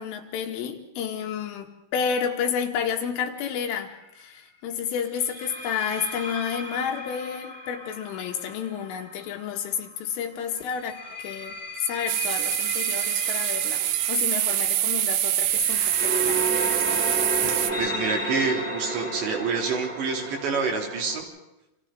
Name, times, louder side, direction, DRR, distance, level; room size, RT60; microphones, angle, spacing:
voice 1, 0.0-3.9 4.2-16.4, left 7 dB, 80° left, 3 dB, 4.2 m, -30 dB
sound 1, 3.4-3.7 5.2-9.9 10.7-21.2, right 1 dB, 5° right, 3.2 m, -34 dB
sound 2, 12.1-17.7, right 12 dB, 80° right, 2.2 m, -25 dB
voice 2, 17.4-21.2, right 4 dB, 65° right, 1 dB, 5.0 m, -27 dB
29.5 x 26.0 x 3.8 m, 0.91 s
omnidirectional pair, 5.7 m